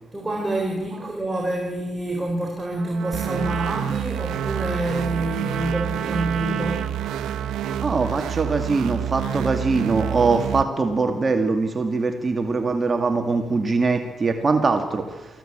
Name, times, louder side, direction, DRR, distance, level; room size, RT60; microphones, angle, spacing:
voice 1, 0.1-6.9, right 1 dB, 10° right, 0 dB, 4.1 m, -27 dB
Trumpet, 2.8-10.8, right 10 dB, 65° right, 1.7 m, -36 dB
sound 1, 3.1-10.6, right 9 dB, 80° right, 1.0 m, -28 dB
voice 2, 7.8-15.4, right 4 dB, 35° right, 5 dB, 2.2 m, -22 dB
20.5 x 15.5 x 9.0 m, 1.2 s
cardioid pair, 90°, 0 cm